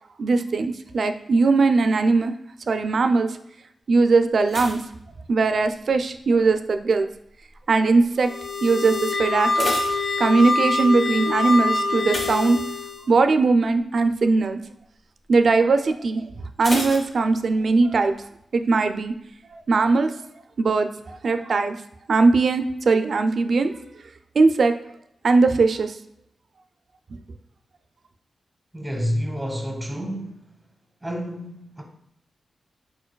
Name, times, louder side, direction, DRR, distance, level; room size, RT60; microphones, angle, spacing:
voice 1, 0.2-2.4 2.7-3.4 3.9-4.8 5.3-7.1 7.7-8.3 8.6-9.7 10.2-12.6 13.1-14.6 15.3-16.2 16.6-18.2 18.5-19.1 19.5-20.1 20.6-21.8 22.1-23.7 24.4-24.7 25.2-26.0, right 3 dB, 65° right, 0.3 m, -20 dB
sound 1, 4.4-5.9 6.2-6.7 7.3-7.7 8.0-8.1 8.5-8.6 9.2-10.7 12.0-13.2 13.5-13.8 14.2-14.3 16.6-17.8 18.1-18.2, left 1 dB, 60° left, 1.2 m, -33 dB
sound 2, 8.2-13.1, left 3 dB, 35° left, 0.9 m, -25 dB
voice 2, 28.7-30.5 31.0-31.8, equal, 5° right, 0.8 m, -29 dB
4.5 x 4.5 x 2.2 m
cardioid pair, 65°, 0 cm